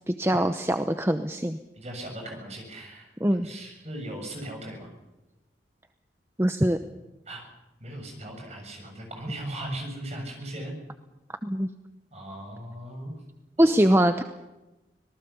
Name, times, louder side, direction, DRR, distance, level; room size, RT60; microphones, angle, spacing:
voice 1, 0.1-1.6 3.2-3.5 6.4-6.8 11.4-11.7 13.6-14.2, right 1 dB, 15° right, 9 dB, 0.8 m, -22 dB
voice 2, 1.8-3.1 3.4-4.9 7.3-7.5 7.8-10.7 12.1-13.1 13.6-13.7, right 1 dB, 40° right, 2 dB, 7.2 m, -38 dB
25.5 x 19.0 x 7.0 m, 1.0 s
head